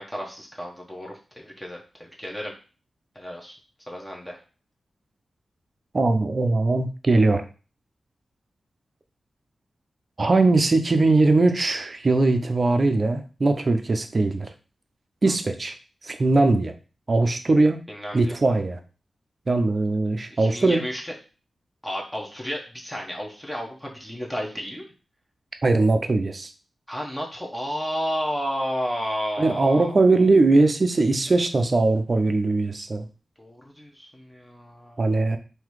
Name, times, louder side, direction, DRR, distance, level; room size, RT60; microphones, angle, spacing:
voice 1, 0.0-2.5 3.1-3.5 3.9-4.4 15.3-15.4 17.9-18.4 20.3-21.1 21.8-24.9 26.9-29.9 33.4-35.1, equal, 10° left, -1 dB, 1.0 m, -32 dB
voice 2, 5.9-7.5 10.2-14.5 15.2-15.7 16.0-16.7 17.1-17.8 18.1-18.8 19.5-20.8 25.6-26.5 29.4-33.1 35.0-35.4, right 2 dB, 40° right, 8 dB, 0.6 m, -20 dB
3.8 x 2.8 x 4.7 m, 0.35 s
wide cardioid pair, 95°, 0 cm